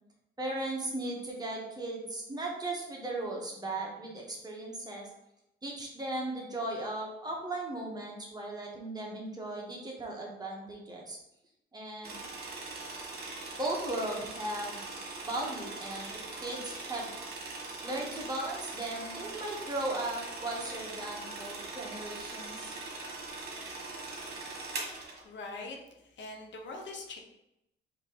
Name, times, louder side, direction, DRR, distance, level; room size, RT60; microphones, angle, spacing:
voice 1, 0.4-5.1 5.6-11.2 11.7-12.2 13.5-14.8 15.2-17.1 17.8-22.8, right 2 dB, 20° right, -2 dB, 1.3 m, -37 dB
sound 1, 12.0-25.2, right 3 dB, 55° right, 1.3 m, -41 dB
voice 2, 24.6-24.9 25.2-25.8 26.0-27.2, left 3 dB, 65° left, 2 dB, 0.9 m, -43 dB
4.3 x 2.9 x 4.2 m, 0.85 s
cardioid pair, 90°, 20 cm